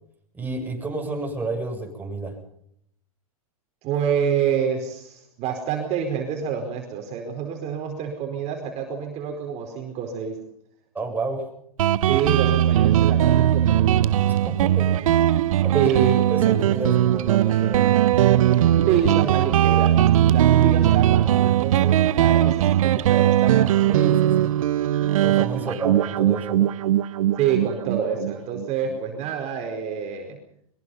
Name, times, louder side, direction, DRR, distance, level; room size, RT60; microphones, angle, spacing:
voice 1, 0.3-2.4 10.9-11.5 14.5-15.0 15.6-16.0 16.3-18.0 23.9-24.5 25.2-26.7, right 2 dB, 10° right, 2 dB, 7.4 m, -31 dB
voice 2, 3.8-10.4 12.1-14.1 15.7-16.2 18.9-23.7 25.6-25.7 27.4-30.4, right 8 dB, 35° right, 3 dB, 4.7 m, -27 dB
Guitar, 11.8-29.0, right 12 dB, 65° right, 0.8 m, -19 dB
23.0 x 22.0 x 5.7 m, 0.69 s
hypercardioid pair, 110°, 18 cm